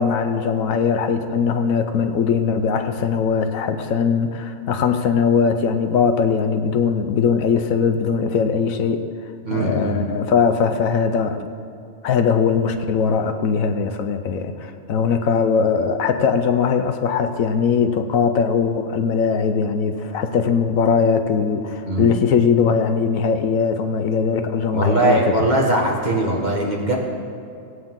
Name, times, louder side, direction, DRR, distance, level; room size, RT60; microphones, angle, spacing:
voice 1, 0.0-9.0 9.5-11.5 12.0-25.2, left 6 dB, 80° left, 7 dB, 1.1 m, -20 dB
voice 2, 9.4-10.0 21.8-22.1 24.7-27.0, right 1 dB, 35° right, -3 dB, 1.8 m, -20 dB
17.0 x 8.7 x 3.7 m, 2.5 s
omnidirectional pair, 1.4 m